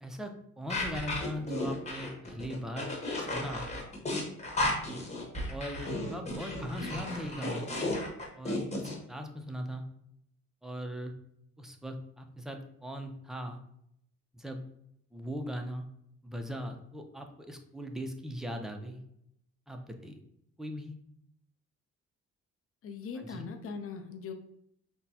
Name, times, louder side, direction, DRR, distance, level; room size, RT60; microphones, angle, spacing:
voice 1, 0.0-2.9 3.2-3.7 4.7-5.0 5.5-7.7 8.3-9.8 10.6-11.1 11.6-13.6 14.3-14.6 15.1-15.8 16.2-19.0 19.7-20.2 20.6-20.9 23.2-23.4, equal, ahead, 4 dB, 0.5 m, -39 dB
sound 1, 0.7-8.9, left 1 dB, 20° left, 1.2 m, -34 dB
voice 2, 22.8-24.3, left 5 dB, 45° left, 5 dB, 0.6 m, -40 dB
5.9 x 2.2 x 2.7 m, 0.74 s
cardioid pair, 90°, 30 cm